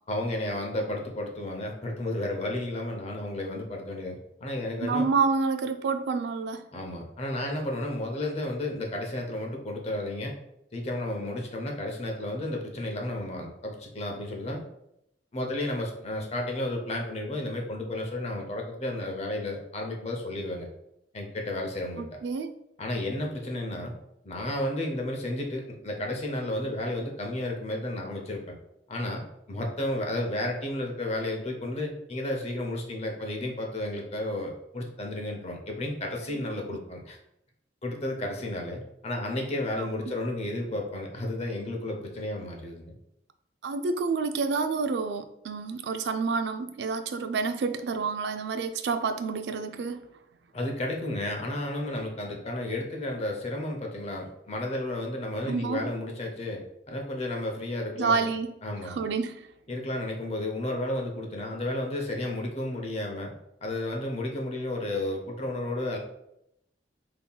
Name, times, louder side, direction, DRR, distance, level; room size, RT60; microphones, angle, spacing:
voice 1, 0.1-5.1 6.7-10.3 10.7-14.6 15.3-20.7 21.1-22.0 22.8-23.9 24.2-28.6 28.9-37.2 37.8-42.9 50.5-58.3 58.6-59.0 59.7-63.3 63.6-66.0, left 1 dB, 35° left, 1 dB, 0.7 m, -32 dB
voice 2, 4.8-6.6 22.0-22.5 36.3-36.4 39.8-39.9 43.6-50.0 55.5-55.9 58.0-58.5 58.9-59.4, right 4 dB, 70° right, 9 dB, 0.4 m, -28 dB
5.4 x 2.8 x 2.3 m, 0.80 s
head